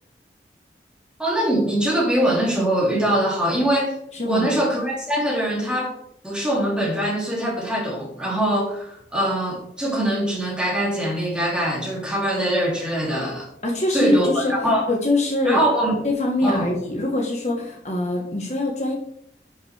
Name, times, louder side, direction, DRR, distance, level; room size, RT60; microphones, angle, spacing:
voice 1, 1.2-3.9 4.2-6.0 6.2-13.5 13.9-14.9 15.4-16.0 16.4-16.7, right 1 dB, 5° right, -3 dB, 2.5 m, -22 dB
voice 2, 4.1-4.5 13.6-15.6 16.0-19.0, left 2 dB, 40° left, 0 dB, 1.2 m, -23 dB
11.5 x 5.3 x 3.3 m, 0.72 s
head